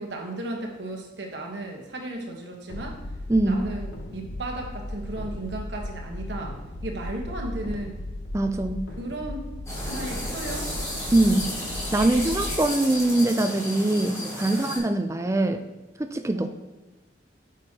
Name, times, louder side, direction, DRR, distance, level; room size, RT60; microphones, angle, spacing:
voice 1, 0.0-3.0 3.4-8.0 9.0-9.5 9.8-11.0 14.4-14.7 16.3-16.5, right 1 dB, 70° right, 1 dB, 1.2 m, -35 dB
sound 1, 2.7-12.6, left 1 dB, 80° left, 0.8 m, -36 dB
voice 2, 3.3-3.7 8.3-8.9 11.1-11.6 11.9-15.6 16.0-16.5, right 2 dB, 15° right, 8 dB, 0.4 m, -23 dB
sound 2, 9.7-14.8, left 1 dB, 20° left, 2.4 m, -33 dB
8.9 x 6.3 x 2.9 m, 1.2 s
head